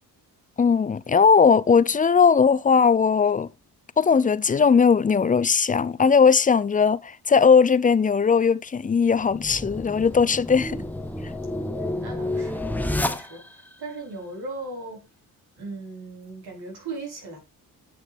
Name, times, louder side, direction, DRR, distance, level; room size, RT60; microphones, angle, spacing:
voice 1, 0.6-3.5 4.0-10.8, left 6 dB, 20° left, 0.5 m, -19 dB
sound 1, 9.1-13.7, left 1 dB, 5° left, 0.9 m, -30 dB
voice 2, 11.6-15.1 15.6-17.4, right 2 dB, 70° right, 4.8 m, -38 dB
10.0 x 6.3 x 3.5 m
supercardioid pair, 65°, 40 cm